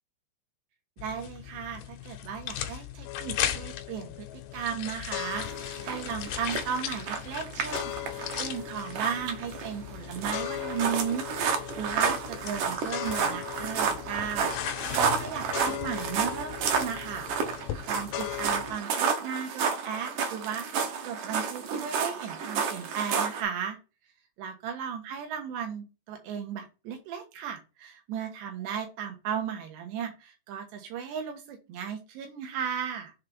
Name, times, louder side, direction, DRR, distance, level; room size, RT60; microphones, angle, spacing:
sound 1, 1.0-18.8, left 10 dB, 75° left, 2.5 m, -39 dB
voice 1, 1.0-17.3 17.9-20.7 21.0-23.8 24.4-33.1, right 7 dB, 85° right, 4 dB, 3.6 m, -35 dB
sound 2, 3.1-18.6, left 16 dB, 90° left, 2.8 m, -41 dB
sound 3, 5.4-23.4, right 6 dB, 70° right, 2.0 m, -31 dB
7.4 x 3.6 x 5.4 m, 0.31 s
omnidirectional pair, 4.8 m